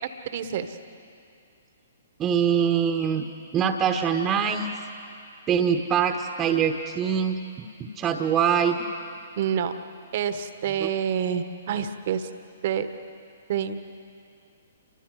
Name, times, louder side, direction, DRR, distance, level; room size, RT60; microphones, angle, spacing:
voice 1, 0.2-0.8 9.4-9.7 10.1-12.3 12.6-12.9 13.5-13.8, right 8 dB, 45° right, 10 dB, 1.4 m, -27 dB
voice 2, 2.2-3.3 3.5-4.7 5.5-8.8 10.8-10.9, right 7 dB, 20° right, 4 dB, 1.3 m, -24 dB
29.0 x 24.0 x 4.9 m, 2.4 s
figure-of-eight pair, 120°, 0 cm